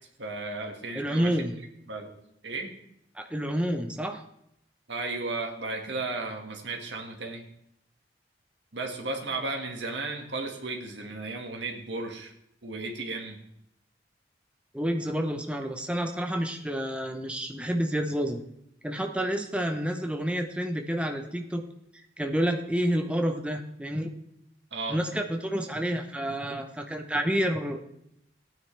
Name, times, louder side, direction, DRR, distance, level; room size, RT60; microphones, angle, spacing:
voice 1, 0.2-1.4 1.9-2.1 2.4-2.7 4.9-7.4 8.7-12.3 12.6-13.4 24.7-25.0, right 3 dB, 80° right, 2 dB, 1.8 m, -34 dB
voice 2, 1.0-1.5 3.1-4.2 14.7-18.4 18.8-21.6 22.2-24.1 24.9-27.9, equal, 5° right, 5 dB, 0.7 m, -29 dB
15.5 x 9.2 x 3.3 m, 0.77 s
head